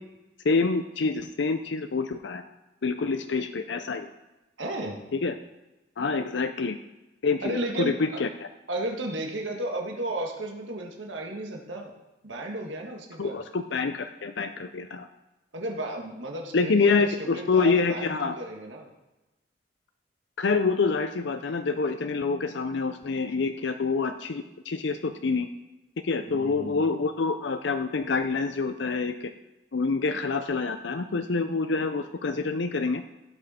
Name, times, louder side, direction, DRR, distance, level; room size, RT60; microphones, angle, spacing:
voice 1, 0.4-2.4 2.8-4.1 5.1-5.4 6.0-6.8 7.2-8.5 13.2-15.1 16.5-18.3 20.4-25.5 26.0-29.3 29.7-33.0, left 4 dB, 75° left, 8 dB, 0.5 m, -27 dB
voice 2, 4.6-5.0 7.4-8.2 8.7-11.9 12.2-13.4 15.5-18.9 26.3-26.8, right 1 dB, 85° right, 1 dB, 1.7 m, -34 dB
16.0 x 6.4 x 4.3 m, 1.0 s
head